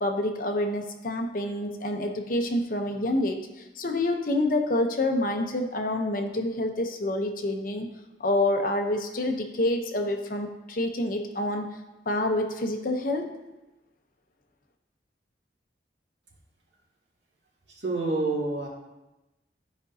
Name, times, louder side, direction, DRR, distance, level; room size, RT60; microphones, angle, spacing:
voice 1, 0.0-3.5 3.8-7.9 8.2-11.8 12.1-13.4, left 1 dB, 50° left, 4 dB, 0.8 m, -27 dB
voice 2, 17.8-18.7, right 2 dB, 75° right, -4 dB, 2.2 m, -27 dB
12.5 x 5.2 x 2.7 m, 1.0 s
head